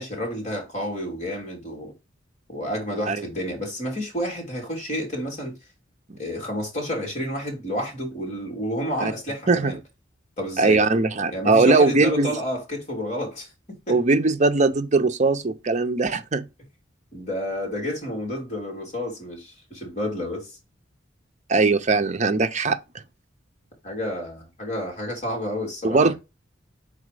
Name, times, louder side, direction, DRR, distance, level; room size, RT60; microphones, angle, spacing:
voice 1, 0.0-1.9 2.5-5.5 6.2-9.8 10.4-10.8 11.3-14.0 17.1-20.5 23.8-26.1, equal, 35° left, 2.8 m, -30 dB
voice 2, 10.6-12.3 13.9-16.4 21.5-22.8 25.8-26.1, right 3 dB, 35° right, 0.6 m, -20 dB
4.9 x 4.0 x 4.9 m
head